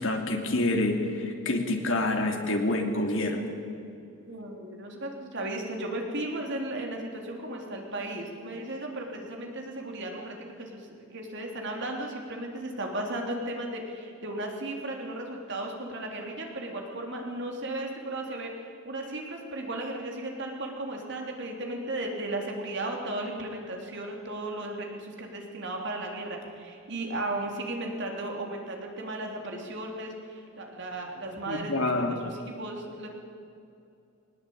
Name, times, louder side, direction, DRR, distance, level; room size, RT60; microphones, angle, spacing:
voice 1, 0.0-3.5 31.5-32.1, left 2 dB, 60° left, 3 dB, 2.9 m, -27 dB
voice 2, 4.3-33.1, right 1 dB, 55° right, 1 dB, 3.6 m, -35 dB
21.0 x 19.5 x 8.7 m, 2.5 s
head